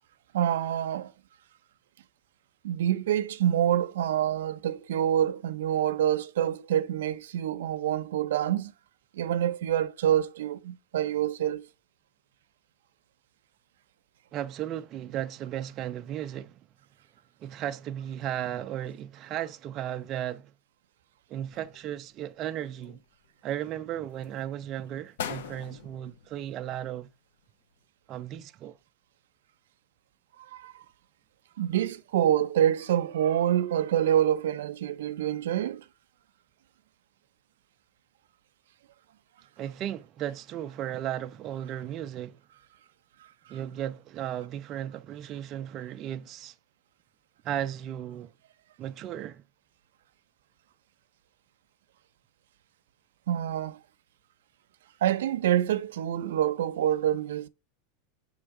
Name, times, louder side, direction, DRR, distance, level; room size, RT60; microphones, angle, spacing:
voice 1, 0.3-1.1 2.6-8.7 9.1-11.7 30.5-30.7 31.6-35.8 43.5-43.6 53.3-53.8 55.0-57.5, right 11 dB, 85° right, 0.5 m, -26 dB
voice 2, 14.3-16.6 17.4-20.5 21.3-23.0 23.4-27.1 28.1-28.8 39.6-42.4 43.5-46.5 47.4-48.3 48.8-49.4, right 11 dB, 25° right, 0.3 m, -35 dB
sound 1, 21.4-22.2 22.6-23.5 24.0-24.4 24.8-24.9 25.2-27.1 27.4-27.5, left 8 dB, 85° left, 0.7 m, -41 dB
7.2 x 3.2 x 4.7 m
supercardioid pair, 170°, 0 cm